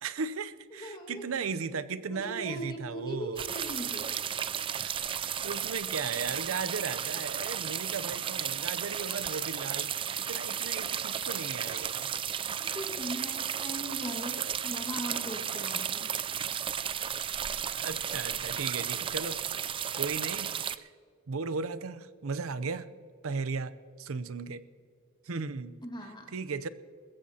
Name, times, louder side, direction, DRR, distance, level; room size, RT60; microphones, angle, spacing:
voice 1, 0.0-3.4 4.8-12.1 17.8-19.4 19.7-20.5 20.8-20.9 21.3-22.9 23.2-24.6 25.2-25.8 26.3-26.7, right 5 dB, 75° right, 15 dB, 0.6 m, -36 dB
voice 2, 0.8-1.2 2.0-4.1 12.6-16.1 25.8-26.3, equal, 20° left, 2 dB, 1.7 m, -39 dB
sound 1, 3.4-20.8, right 8 dB, 25° right, 0.3 m, -34 dB
21.0 x 15.0 x 2.9 m, 2.1 s
head